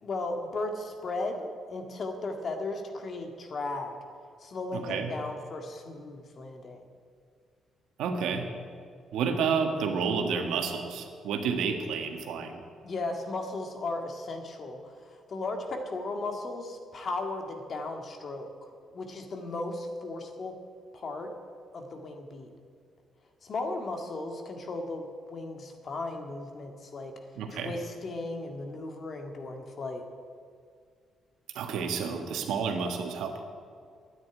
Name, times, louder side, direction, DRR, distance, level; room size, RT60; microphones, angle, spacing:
voice 1, 0.0-3.9 4.4-6.8 12.8-20.6 20.9-21.3 21.7-22.5 23.4-27.1 27.5-30.0, left 2 dB, 50° left, 4 dB, 1.9 m, -36 dB
voice 2, 4.7-5.1 8.0-8.5 9.1-12.6 27.4-27.7 31.5-33.4, right 5 dB, 85° right, 5 dB, 1.5 m, -30 dB
9.7 x 9.6 x 9.2 m, 2.2 s
cardioid pair, 90°, 0 cm